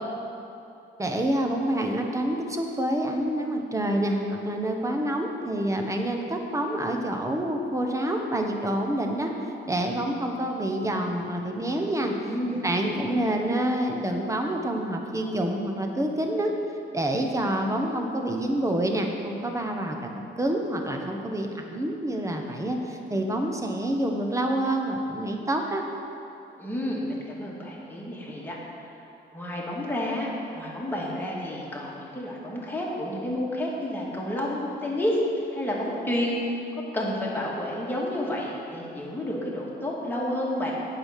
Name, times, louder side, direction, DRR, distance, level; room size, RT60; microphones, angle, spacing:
voice 1, 1.0-9.3 9.6-12.1 12.6-16.5 16.9-25.8, right 1 dB, 15° right, 2 dB, 1.1 m, -27 dB
voice 2, 12.3-13.2 26.6-28.6 29.3-35.2 35.5-36.4 36.9-40.7, left 1 dB, 10° left, -5 dB, 2.2 m, -30 dB
8.7 x 5.8 x 6.6 m, 2.8 s
cardioid pair, 90°, 20 cm